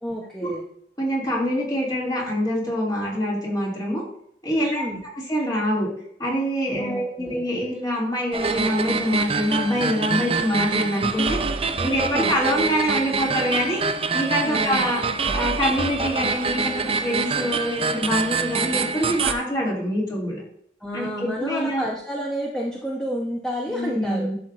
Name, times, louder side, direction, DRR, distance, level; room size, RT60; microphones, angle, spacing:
voice 1, 0.0-0.6 4.6-5.0 6.7-7.5 12.0-12.3 14.4-14.9 20.8-24.3, equal, 5° left, -3 dB, 1.0 m, -30 dB
voice 2, 1.0-4.0 4.4-4.8 5.3-5.9 6.2-11.4 11.8-15.0 15.3-20.4 20.9-21.8 23.7-24.3, equal, 25° left, -4 dB, 2.7 m, -25 dB
sound 1, 8.3-19.3, right 4 dB, 35° right, 0.5 m, -25 dB
11.5 x 5.8 x 2.7 m, 0.67 s
head